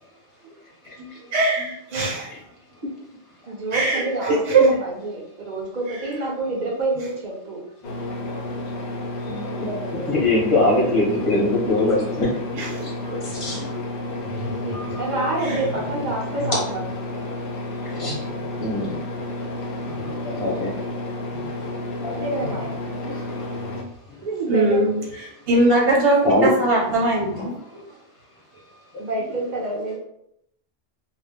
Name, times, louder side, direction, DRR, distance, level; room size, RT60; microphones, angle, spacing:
voice 1, 1.0-2.3 3.7-4.7 8.3-8.4 12.5-13.3 13.6-13.7 14.3-14.5 15.4-15.5 18.0-18.2 20.0-20.2 21.3-21.5 22.0-22.2 23.0-23.2 24.5-27.8, right 2 dB, 65° right, -3 dB, 1.0 m, -22 dB
voice 2, 3.5-7.6 9.5-10.1 14.4-16.8 22.1-22.8 24.2-24.8 25.5-26.0 29.0-30.0, right 2 dB, 50° right, -2 dB, 0.7 m, -28 dB
sound 1, 7.8-23.8, left 1 dB, 65° left, 0.7 m, -31 dB
voice 3, 9.2-9.7 10.1-12.4 12.8-12.9 13.2-13.7 14.7-15.0 15.5-15.6 17.8-18.2 18.6-19.0 20.0-20.7 22.0-22.2 23.0-23.3 26.2-26.7, left 2 dB, 30° left, -4 dB, 0.9 m, -23 dB
2.3 x 2.0 x 3.4 m, 0.74 s
omnidirectional pair, 1.2 m